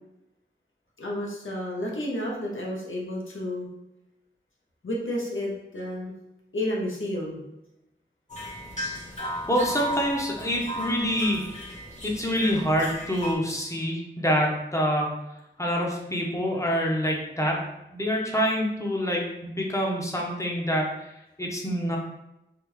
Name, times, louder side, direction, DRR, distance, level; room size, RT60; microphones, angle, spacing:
voice 1, 1.0-3.7 4.8-6.1 6.5-7.4, left 1 dB, 75° left, -2 dB, 0.8 m, -31 dB
sound 1, 8.3-13.4, left 1 dB, 35° left, 1.1 m, -35 dB
voice 2, 9.5-11.6 12.0-15.1 15.6-17.6 17.9-20.9 21.4-22.0, equal, 15° left, -2 dB, 0.7 m, -26 dB
3.5 x 2.3 x 3.1 m, 0.90 s
wide cardioid pair, 50°, 20 cm